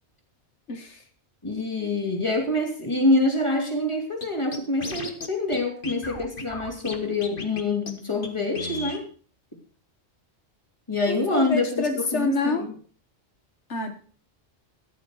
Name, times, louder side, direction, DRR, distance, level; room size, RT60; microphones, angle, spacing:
voice 1, 0.7-1.0 11.1-12.7 13.7-13.9, left 3 dB, 85° left, 6 dB, 1.8 m, -27 dB
voice 2, 1.4-9.1 10.9-12.7, left 2 dB, 25° left, 3 dB, 3.1 m, -26 dB
Scratching (performance technique), 4.2-4.3 4.5-5.3 5.5-5.6 5.8-7.0 7.2-7.6 7.9-8.0 8.2-8.3 8.5-9.0, left 3 dB, 50° left, 1.9 m, -34 dB
14.0 x 10.5 x 4.8 m, 0.41 s
omnidirectional pair, 1.2 m